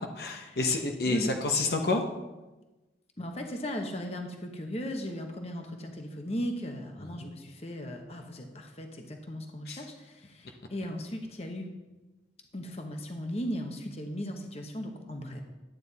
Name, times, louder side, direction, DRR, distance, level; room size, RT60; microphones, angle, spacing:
voice 1, 0.2-2.0 7.2-7.3 9.7-9.8, left 3 dB, 60° left, 3 dB, 1.0 m, -29 dB
voice 2, 3.2-11.7 12.5-15.4, equal, 35° left, 4 dB, 1.1 m, -37 dB
11.5 x 9.2 x 4.1 m, 1.1 s
head